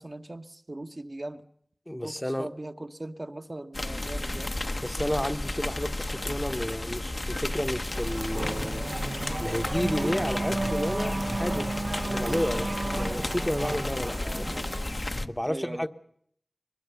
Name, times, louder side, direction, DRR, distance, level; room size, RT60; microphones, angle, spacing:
voice 1, 0.0-1.4 2.0-4.5 14.2-14.5 15.4-15.9, right 1 dB, 50° right, 1.3 m, -40 dB
voice 2, 1.9-2.5 4.8-8.9 9.4-11.7 12.0-14.5 15.3-15.9, equal, 15° left, 1.0 m, -31 dB
sound 1, 3.7-15.3, left 1 dB, 50° left, 1.0 m, -33 dB
Race car auto racing / Accelerating revving vroom, 7.8-15.1, right 2 dB, 75° right, 1.1 m, -33 dB
sound 2, 8.0-15.3, left 2 dB, 90° left, 1.5 m, -47 dB
22.5 x 21.0 x 7.0 m
wide cardioid pair, 50°, 0 cm